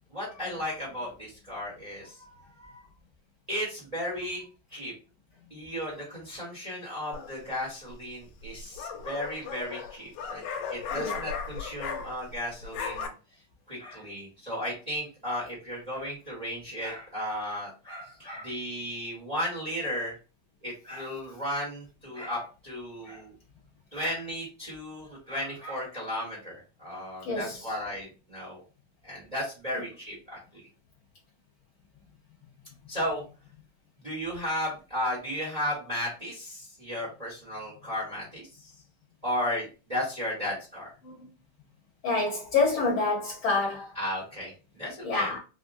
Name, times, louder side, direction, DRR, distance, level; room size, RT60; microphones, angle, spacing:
voice 1, 0.1-2.3 2.6-2.8 3.5-4.4 4.7-4.9 5.5-10.4 10.7-13.1 13.7-20.1 20.6-23.3 23.9-28.6 29.0-30.6 32.9-33.2 34.0-38.7 39.2-40.9 43.9-45.3, equal, 45° right, 0.4 m, -35 dB
sound 1, 7.1-7.6 8.4-12.4 12.6-13.1, left 6 dB, 80° left, 1.6 m, -36 dB
voice 2, 27.2-27.6 41.0-41.2 42.0-43.9 45.0-45.4, left 3 dB, 55° left, 1.6 m, -27 dB
4.8 x 2.0 x 2.6 m
omnidirectional pair, 3.4 m